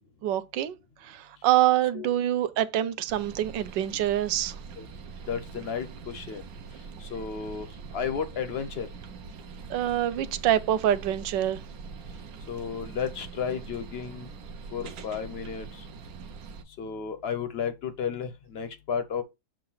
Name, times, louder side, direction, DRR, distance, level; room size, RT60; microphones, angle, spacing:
voice 1, 0.2-0.8 1.0-4.6 9.7-11.6, right 12 dB, 80° right, 1.3 m, -25 dB
sound 1, 3.1-16.6, right 5 dB, 60° right, 1.1 m, -43 dB
voice 2, 5.3-6.4 7.0-8.9 12.5-14.3 14.7-15.9 16.8-19.2, left 7 dB, 50° left, 0.7 m, -33 dB
7.6 x 2.6 x 5.6 m
omnidirectional pair, 2.0 m